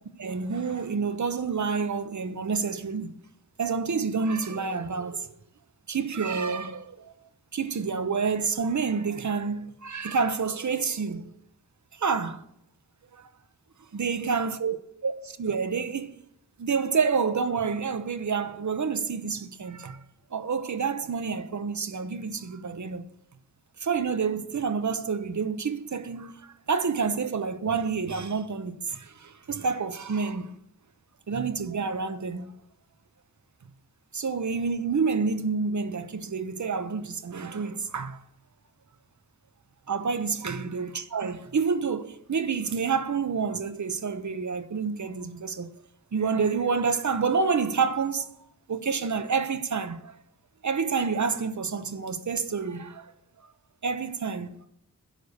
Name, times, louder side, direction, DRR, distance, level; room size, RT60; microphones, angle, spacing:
voice 1, 0.2-3.1 3.6-5.3 5.9-7.1 7.5-11.3 11.9-12.4 13.1-13.3 14.0-16.2 16.6-20.0 20.3-23.0 23.8-30.5 31.3-32.4 34.1-38.2 39.9-45.7 46.1-48.3 48.7-50.2 50.6-53.1 53.8-54.5, right 5 dB, 60° right, 0.9 m, -28 dB
10.5 x 6.9 x 8.0 m
wide cardioid pair, 110°, 33 cm